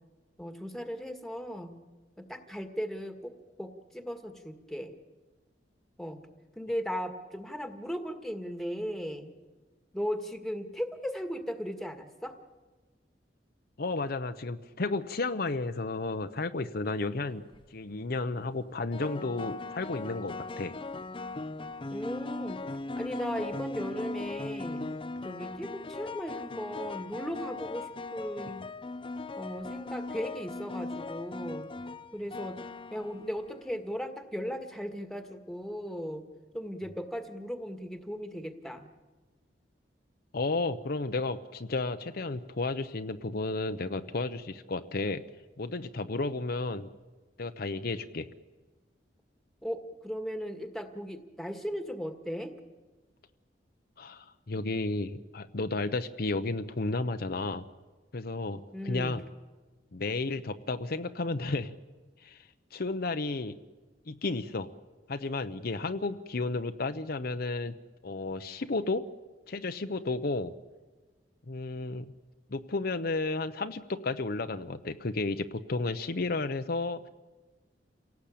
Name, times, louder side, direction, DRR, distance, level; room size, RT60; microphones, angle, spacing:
voice 1, 0.4-1.7 2.2-3.3 3.6-4.9 6.0-6.2 6.6-9.3 9.9-12.3 21.9-22.6 23.0-24.9 25.2-28.7 29.4-31.7 32.1-32.6 32.9-36.3 36.5-38.9 49.6-52.5 58.7-59.2, equal, ahead, 7 dB, 1.8 m, -37 dB
voice 2, 13.8-17.4 17.7-20.7 40.3-45.2 45.6-46.9 47.4-48.3 54.0-57.6 58.1-59.2 59.9-61.7 62.2-62.4 62.7-63.6 64.1-64.7 65.1-67.7 68.0-69.1 69.5-70.5 71.5-72.1 72.5-77.1, left 3 dB, 60° left, 9 dB, 0.8 m, -32 dB
sound 1, 17.3-17.7 18.9-33.8, left 3 dB, 30° left, 0.7 m, -39 dB
28.0 x 18.0 x 8.6 m, 1.3 s
head